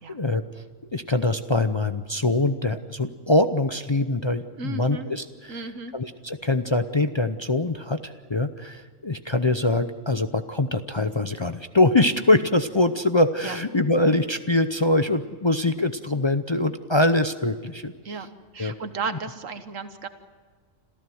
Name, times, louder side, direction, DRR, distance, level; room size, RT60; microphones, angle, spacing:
voice 1, 0.1-0.6 0.9-18.3 18.6-18.7 19.1-19.2, left 2 dB, 30° left, 9 dB, 0.6 m, -23 dB
voice 2, 4.6-5.1 5.5-5.9 13.4-13.6 18.0-18.3 18.5-20.1, right 4 dB, 90° right, 9 dB, 1.7 m, -34 dB
26.5 x 14.5 x 7.7 m, 1.6 s
omnidirectional pair, 1.3 m